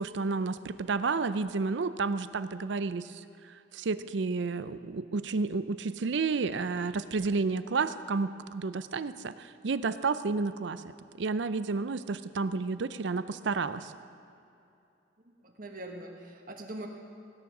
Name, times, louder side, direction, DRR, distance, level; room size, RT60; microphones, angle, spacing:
voice 1, 0.0-13.9, right 4 dB, 65° right, 13 dB, 0.5 m, -31 dB
voice 2, 15.4-16.9, right 1 dB, 45° right, 2 dB, 1.3 m, -42 dB
17.0 x 9.7 x 6.0 m, 2.7 s
head